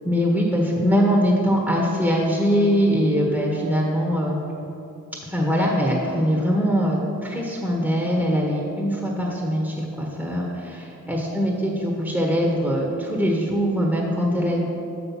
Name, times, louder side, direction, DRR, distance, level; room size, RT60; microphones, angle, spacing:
voice 1, 0.1-4.4 5.3-14.6, equal, 5° right, -2 dB, 1.1 m, -22 dB
6.7 x 5.9 x 5.6 m, 2.9 s
cardioid pair, 80°, 35 cm